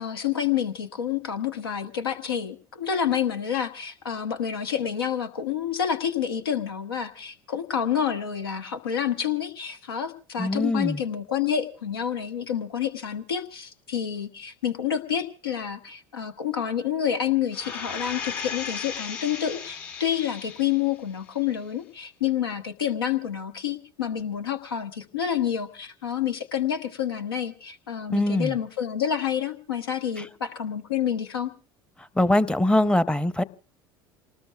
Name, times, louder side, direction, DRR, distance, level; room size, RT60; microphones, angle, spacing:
voice 1, 0.0-31.5, left 9 dB, 85° left, 8 dB, 1.1 m, -28 dB
voice 2, 10.4-11.0 28.1-28.5 32.2-33.4, left 1 dB, 10° left, 15 dB, 0.7 m, -22 dB
sound 1, 17.5-20.9 21.4-21.5, left 6 dB, 65° left, 3.9 m, -36 dB
28.0 x 19.5 x 2.3 m, 0.36 s
hypercardioid pair, 70°, 12 cm